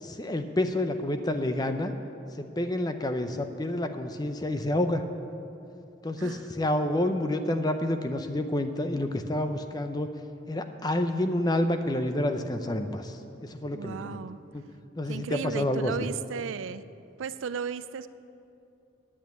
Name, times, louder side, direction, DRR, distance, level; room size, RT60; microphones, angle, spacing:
voice 1, 0.0-1.9 2.4-5.0 6.0-10.1 10.5-14.2 14.5-14.6 15.0-16.1, left 1 dB, 20° left, 7 dB, 0.5 m, -29 dB
voice 2, 13.7-14.4 15.1-16.8 17.2-18.1, right 6 dB, 85° right, 14 dB, 0.4 m, -35 dB
8.6 x 8.4 x 9.2 m, 2.7 s
head